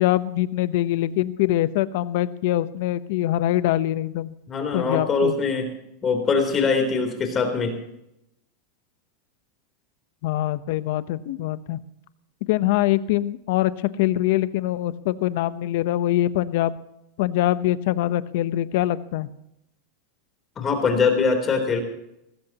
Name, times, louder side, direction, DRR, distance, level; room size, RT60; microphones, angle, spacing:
voice 1, 0.0-4.3 4.7-5.4 10.2-11.8 12.5-13.7 14.0-16.7 17.2-19.3, left 14 dB, 65° left, 14 dB, 0.9 m, -23 dB
voice 2, 4.5-5.7 6.0-7.8 20.6-21.8, left 4 dB, 25° left, 5 dB, 3.6 m, -22 dB
19.0 x 16.0 x 3.0 m, 0.83 s
supercardioid pair, 135°, 0 cm